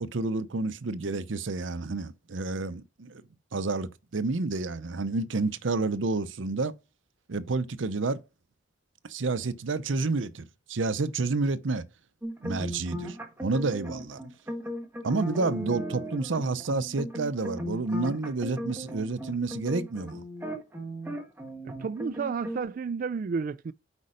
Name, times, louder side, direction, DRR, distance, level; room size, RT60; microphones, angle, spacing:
voice 1, 0.0-3.2 3.5-6.8 7.3-8.2 9.1-11.8 12.4-14.2 15.0-20.2, right 3 dB, 80° right, 0.7 m, -29 dB
sound 1, 12.2-22.6, equal, 10° right, 1.6 m, -37 dB
voice 2, 21.8-23.7, right 5 dB, 45° right, 0.3 m, -31 dB
8.3 x 5.3 x 5.1 m
head